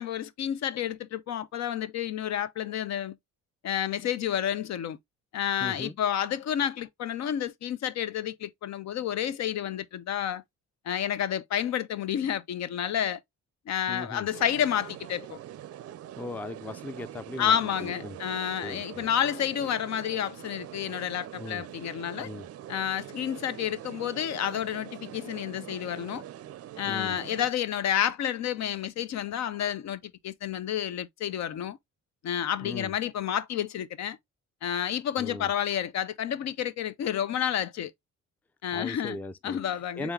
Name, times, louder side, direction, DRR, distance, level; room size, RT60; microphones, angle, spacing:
voice 1, 0.0-3.1 3.6-5.0 5.3-10.4 10.9-13.2 13.7-15.4 17.4-22.3 22.7-26.2 26.8-31.8 32.2-34.2 34.6-37.9 38.6-39.2 39.4-40.1, left 10 dB, 65° left, 0.5 m, -30 dB
voice 2, 5.6-6.0 13.9-14.3 16.2-18.2 18.6-19.1 21.4-21.6 22.2-22.5 26.8-27.2 32.6-32.9 35.2-35.5 38.7-40.1, left 2 dB, 5° left, 0.4 m, -38 dB
sound 1, 14.3-27.5, right 12 dB, 55° right, 0.4 m, -44 dB
3.6 x 3.5 x 3.1 m
cardioid pair, 90°, 30 cm